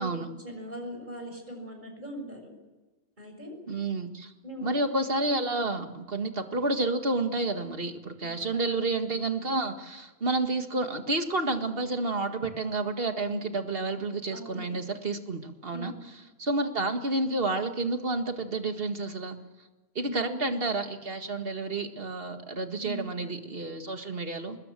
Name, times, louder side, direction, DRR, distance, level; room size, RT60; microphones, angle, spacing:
voice 1, 0.0-2.5 3.2-3.6 4.4-4.8 8.2-8.8 14.3-14.7 15.7-16.1 20.0-20.4 22.8-23.2, equal, 45° right, 4 dB, 6.6 m, -40 dB
voice 2, 3.7-4.3 4.6-15.9 16.4-19.4 20.0-24.6, right 2 dB, 65° right, 6 dB, 2.1 m, -30 dB
24.5 x 21.0 x 7.6 m, 1.2 s
omnidirectional pair, 1.1 m